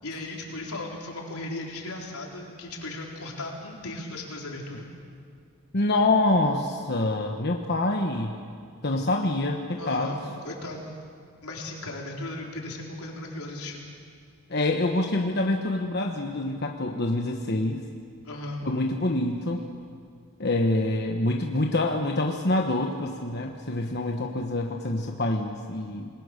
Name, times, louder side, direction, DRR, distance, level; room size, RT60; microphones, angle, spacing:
voice 1, 0.0-4.9 9.8-10.2 10.4-10.9 11.4-13.8 18.2-18.6, left 2 dB, 85° left, -1 dB, 4.2 m, -36 dB
voice 2, 5.7-8.3 8.8-10.2 14.5-17.8 18.7-19.6 20.4-26.1, left 2 dB, 50° left, 2 dB, 1.2 m, -26 dB
27.5 x 20.5 x 6.7 m, 2.2 s
head